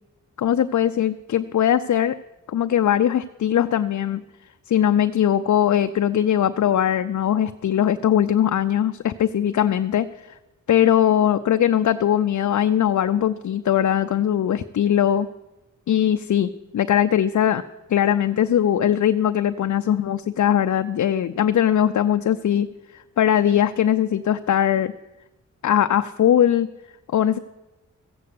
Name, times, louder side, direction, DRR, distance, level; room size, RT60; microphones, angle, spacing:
voice 1, 0.4-2.2 2.5-4.2 4.7-10.1 10.7-15.3 15.9-17.6 17.9-22.7 23.2-24.9 25.6-26.7 27.1-27.4, left 10 dB, 65° left, 9 dB, 0.5 m, -20 dB
15.0 x 8.0 x 8.5 m, 1.0 s
cardioid pair, 60°, 31 cm